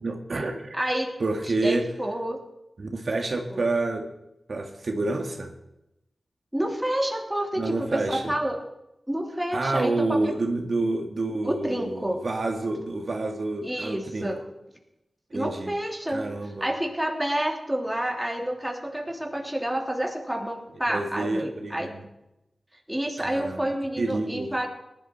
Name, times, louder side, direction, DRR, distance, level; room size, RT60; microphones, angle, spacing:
voice 1, 0.0-0.8 1.2-1.9 2.8-4.1 4.5-5.5 7.6-8.3 9.5-14.3 15.3-15.7 16.1-16.7 20.9-22.0 23.2-23.6 24.0-24.5, right 2 dB, 65° right, 3 dB, 1.7 m, -28 dB
voice 2, 0.7-1.1 1.4-2.4 3.5-3.7 6.5-8.6 9.1-10.3 11.4-12.2 13.6-14.4 15.3-16.3 16.6-21.9 22.9-24.7, right 1 dB, 10° right, 1 dB, 2.9 m, -29 dB
18.5 x 11.5 x 4.5 m, 0.89 s
cardioid pair, 50°, 0 cm